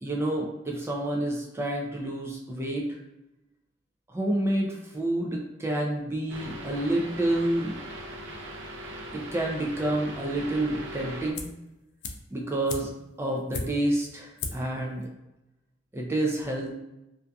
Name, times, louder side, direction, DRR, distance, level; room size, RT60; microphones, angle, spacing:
voice 1, 0.0-2.9 4.1-7.7 9.1-11.5 12.3-12.9 13.2-15.1 15.9-16.7, right 1 dB, 15° right, -1 dB, 0.3 m, -29 dB
sound 1, 6.3-11.3, right 1 dB, 80° right, 0.4 m, -40 dB
sound 2, 11.3-11.7 12.0-14.0 14.4-14.8 15.0-15.1, left 4 dB, 60° left, 0.3 m, -37 dB
2.6 x 2.4 x 2.3 m, 0.94 s
head